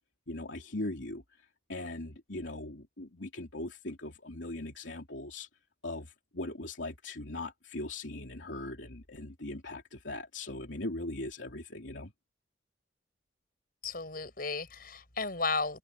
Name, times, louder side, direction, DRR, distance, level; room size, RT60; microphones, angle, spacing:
voice 1, 0.3-1.2 1.7-5.5 5.8-12.1, left 2 dB, 70° left, 3.2 m, -40 dB
voice 2, 13.8-15.8, left 3 dB, 50° left, 6.7 m, -34 dB
open air
head